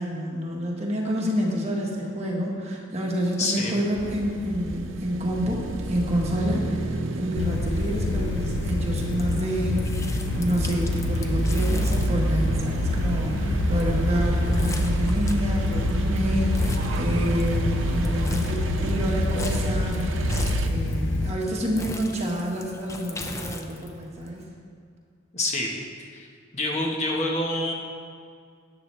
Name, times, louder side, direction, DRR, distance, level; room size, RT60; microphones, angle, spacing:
voice 1, 0.0-5.6 5.9-20.0 20.6-24.4, equal, 30° right, -2 dB, 1.4 m, -28 dB
voice 2, 3.4-3.7 25.3-25.7 26.1-26.3 26.5-27.7, left 2 dB, 35° left, -1 dB, 1.1 m, -26 dB
sound 1, 4.0-20.7, right 2 dB, 75° right, 0.7 m, -29 dB
sound 2, 7.4-21.3, left 2 dB, 65° left, 0.7 m, -28 dB
sound 3, 9.0-24.5, left 2 dB, 15° left, 0.5 m, -40 dB
13.0 x 9.0 x 3.3 m, 2.2 s
head